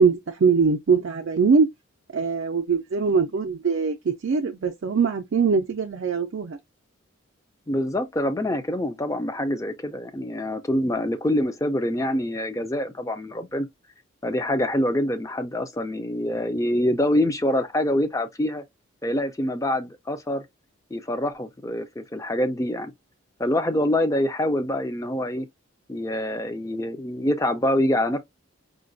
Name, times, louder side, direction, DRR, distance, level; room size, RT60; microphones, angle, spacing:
voice 1, 0.0-1.7 2.1-6.6, right 5 dB, 60° right, 0.4 m, -22 dB
voice 2, 7.7-13.7 14.2-18.6 19.0-20.4 20.9-22.9 23.4-25.5 25.9-28.2, left 1 dB, 15° left, 0.4 m, -25 dB
4.9 x 2.2 x 2.6 m
head